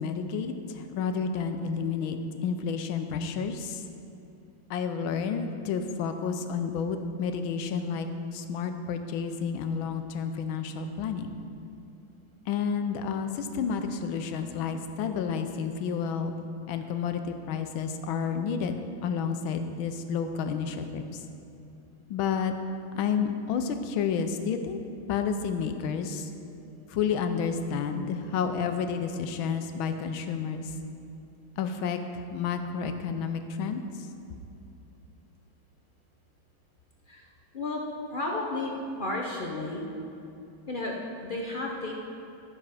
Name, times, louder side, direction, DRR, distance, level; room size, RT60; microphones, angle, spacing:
voice 1, 0.0-3.8 4.7-11.4 12.5-16.3 16.7-21.2 22.1-22.5 22.9-24.8 25.1-26.3 26.9-30.7 31.6-33.8, left 6 dB, 80° left, 7 dB, 1.5 m, -30 dB
voice 2, 37.5-38.7 39.0-39.8 40.7-41.9, left 2 dB, 55° left, -2 dB, 0.5 m, -33 dB
12.5 x 7.1 x 4.9 m, 2.8 s
omnidirectional pair, 2.2 m